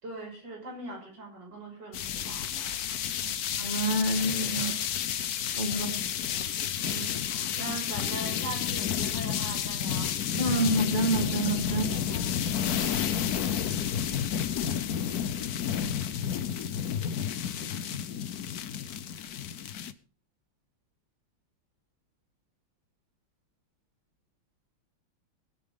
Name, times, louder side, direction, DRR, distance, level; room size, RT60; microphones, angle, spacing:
voice 1, 0.0-2.8 3.0-3.3 4.5-4.7 5.7-6.0 6.3-10.1 11.7-12.7, right 3 dB, 60° right, -1 dB, 6.9 m, -42 dB
sound 1, 1.9-19.9, left 9 dB, 60° left, 1.1 m, -31 dB
voice 2, 3.6-4.7 5.6-5.9 10.4-11.8, right 1 dB, 20° right, 3 dB, 2.0 m, -27 dB
24.0 x 8.9 x 3.8 m, 0.40 s
omnidirectional pair, 2.3 m